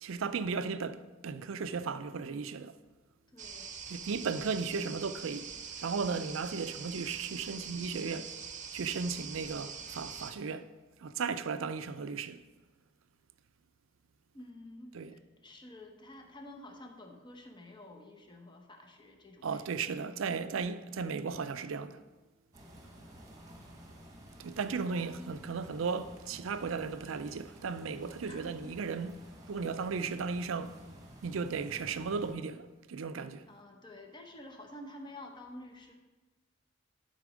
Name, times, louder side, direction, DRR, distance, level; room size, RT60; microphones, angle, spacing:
voice 1, 0.0-2.8 3.9-5.5 5.8-8.3 8.7-10.7 11.0-12.4 14.9-15.1 19.4-22.0 24.4-29.2 29.5-30.8 31.2-33.4, right 5 dB, 80° right, 0.5 m, -35 dB
voice 2, 3.3-3.8 14.3-20.1 24.9-25.3 28.2-28.8 33.5-35.9, left 1 dB, 25° left, 0.9 m, -50 dB
sound 1, 3.4-10.3, right 7 dB, 40° right, 0.8 m, -44 dB
sound 2, 22.5-32.3, equal, 20° right, 1.3 m, -53 dB
12.0 x 4.2 x 5.0 m
head